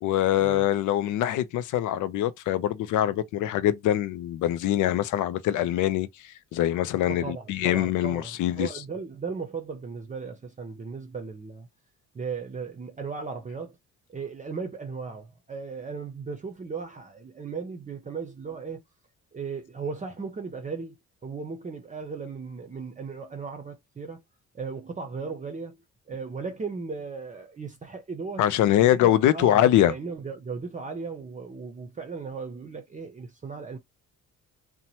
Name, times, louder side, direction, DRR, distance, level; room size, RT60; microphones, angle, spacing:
voice 1, 0.0-8.7 28.4-29.9, left 12 dB, 80° left, 0.5 m, -24 dB
voice 2, 7.0-11.7 12.1-13.8 14.1-18.8 19.3-21.0 21.2-24.2 24.5-25.8 26.1-28.5 28.8-33.8, right 5 dB, 25° right, 0.7 m, -36 dB
2.9 x 2.2 x 2.7 m
cardioid pair, 90°, 30 cm